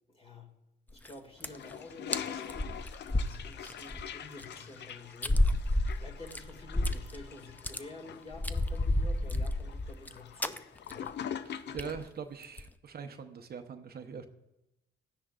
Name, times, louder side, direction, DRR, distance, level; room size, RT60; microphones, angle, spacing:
voice 1, 0.1-0.5 0.9-11.2, left 2 dB, 30° left, 2 dB, 2.0 m, -50 dB
sound 1, 0.9-1.1 1.4-1.7 2.1-2.2 2.5-4.0 4.4-4.5 5.2-7.2 7.5-7.8 8.3-10.1 10.4-10.6 10.9-11.1 11.4-11.5 11.8-12.0 12.4-12.7, left 1 dB, 10° left, 0.4 m, -30 dB
Toilet flush, 1.4-12.1, left 9 dB, 60° left, 0.5 m, -44 dB
voice 2, 11.7-14.3, right 6 dB, 50° right, 7 dB, 0.7 m, -42 dB
12.5 x 10.0 x 2.4 m, 0.91 s
cardioid pair, 90°, 20 cm